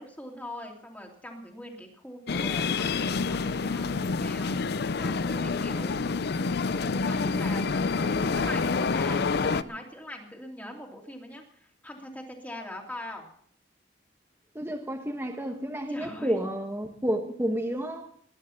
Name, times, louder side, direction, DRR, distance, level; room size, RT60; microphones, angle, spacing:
voice 1, 0.0-4.6 5.0-5.9 6.7-13.3 15.9-16.4, left 1 dB, 10° left, 2.9 m, -42 dB
sound 1, 2.3-9.6, left 4 dB, 60° left, 0.5 m, -27 dB
voice 2, 14.5-18.1, equal, 15° right, 1.3 m, -30 dB
20.5 x 10.5 x 5.8 m
head